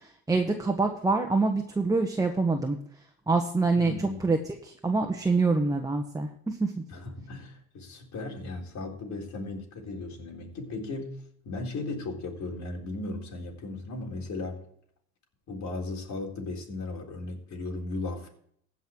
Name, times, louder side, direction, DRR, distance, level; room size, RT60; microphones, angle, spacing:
voice 1, 0.3-2.8 3.3-3.9 4.2-4.4 4.6-6.7, right 3 dB, 10° right, 3 dB, 1.4 m, -25 dB
voice 2, 3.7-4.2 6.9-11.2 11.4-14.6 15.5-18.3, left 2 dB, 60° left, 1 dB, 3.9 m, -36 dB
16.0 x 5.7 x 4.6 m, 0.65 s
supercardioid pair, 75°, 33 cm